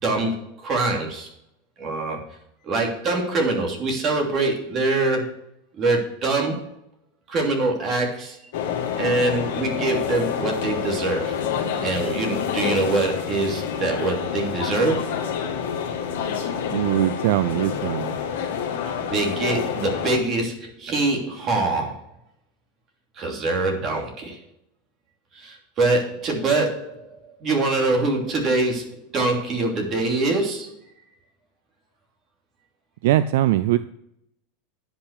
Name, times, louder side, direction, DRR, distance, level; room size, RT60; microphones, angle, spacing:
voice 1, 0.0-1.3 1.8-2.2 2.6-5.3 5.8-6.6 7.3-8.4 9.0-11.4 11.8-15.1 18.8-22.0 23.2-24.4 25.3-27.1 27.4-30.7, right 2 dB, 35° right, 1 dB, 2.9 m, -24 dB
sound 1, 8.5-20.2, left 7 dB, 80° left, 2.0 m, -28 dB
voice 2, 16.7-18.1 33.0-33.8, right 14 dB, 75° right, 14 dB, 0.4 m, -21 dB
10.0 x 5.7 x 6.5 m, 0.76 s
supercardioid pair, 125°, 0 cm